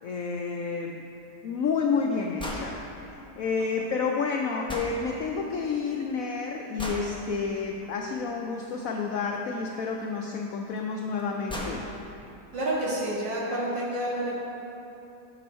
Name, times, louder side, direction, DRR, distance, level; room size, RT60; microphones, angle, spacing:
voice 1, 0.0-1.1 1.4-2.8 3.1-11.9, left 5 dB, 75° left, 1 dB, 0.7 m, -30 dB
sound 1, 2.4-2.7 4.7-4.9 6.8-7.1 9.3-9.4 10.8-10.9 11.2-11.3 11.5-11.8, left 1 dB, 5° left, 0.3 m, -34 dB
voice 2, 12.5-14.3, right 1 dB, 75° right, -6 dB, 2.4 m, -29 dB
11.5 x 5.4 x 4.3 m, 2.8 s
omnidirectional pair, 2.0 m